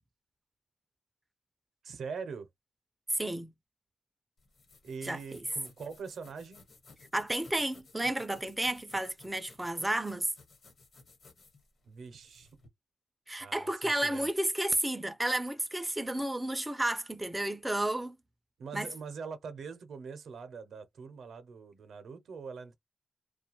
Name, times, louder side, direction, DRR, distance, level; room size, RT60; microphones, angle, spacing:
voice 1, 1.8-2.5 4.8-6.6 11.9-12.5 13.4-14.3 18.6-22.8, right 5 dB, 80° right, 0.5 m, -43 dB
voice 2, 3.1-3.5 5.0-5.4 7.1-10.3 13.3-18.2 18.7-18.9, right 1 dB, 10° right, 0.3 m, -32 dB
sound 1, 4.4-12.7, left 3 dB, 55° left, 1.1 m, -58 dB
2.4 x 2.2 x 2.9 m
wide cardioid pair, 145°, 0 cm